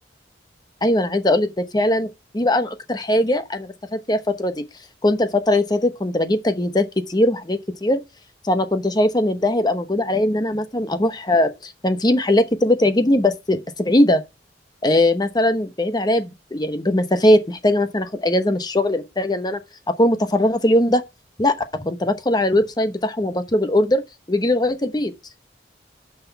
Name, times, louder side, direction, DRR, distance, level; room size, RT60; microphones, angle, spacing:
voice 1, 0.8-4.5 5.0-8.0 8.4-14.2 14.8-19.6 19.9-21.0 21.4-21.5 21.8-24.0 24.3-25.1, left 1 dB, 25° left, 0.9 m, -20 dB
7.4 x 5.9 x 7.1 m
head